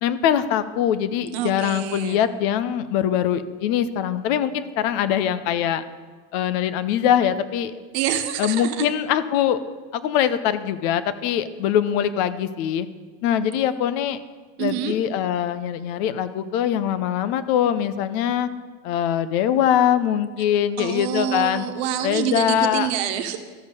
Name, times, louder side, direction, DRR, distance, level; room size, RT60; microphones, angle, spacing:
voice 1, 0.0-5.8 6.3-7.7 8.4-9.6 9.9-12.9 13.2-14.2 14.6-18.5 18.8-21.7 22.0-22.9, left 10 dB, 65° left, 13 dB, 0.8 m, -22 dB
voice 2, 1.3-2.2 7.9-8.9 14.6-15.0 20.8-23.4, right 10 dB, 70° right, 7 dB, 1.2 m, -26 dB
13.5 x 5.3 x 6.7 m, 1.4 s
supercardioid pair, 135°, 33 cm